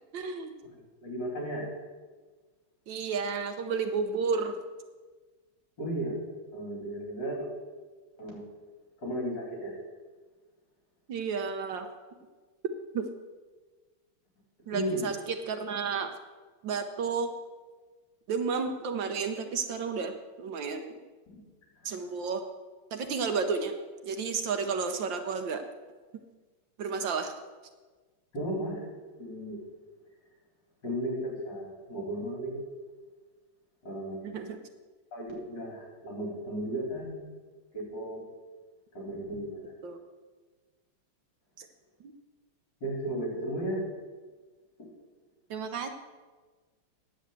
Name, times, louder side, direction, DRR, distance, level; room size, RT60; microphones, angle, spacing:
voice 1, 0.1-0.5 2.9-4.6 11.1-11.9 12.9-13.1 14.7-16.1 16.6-17.3 18.3-21.0 21.8-22.4 22.9-23.7 24.0-25.6 26.8-27.3 34.2-34.6 39.8-40.0 41.6-41.7 45.5-45.9, right 5 dB, 65° right, 7 dB, 1.4 m, -32 dB
voice 2, 1.0-1.7 5.8-6.2 6.5-7.5 8.2-8.4 9.0-9.7 14.7-15.1 21.3-21.4 22.1-22.2 28.3-28.8 29.2-29.6 30.8-32.6 33.8-34.2 35.1-37.2 37.7-38.2 38.9-39.7 42.8-43.8 44.8-44.9, right 1 dB, 55° left, -1 dB, 4.1 m, -35 dB
10.0 x 7.6 x 8.0 m, 1.3 s
omnidirectional pair, 2.3 m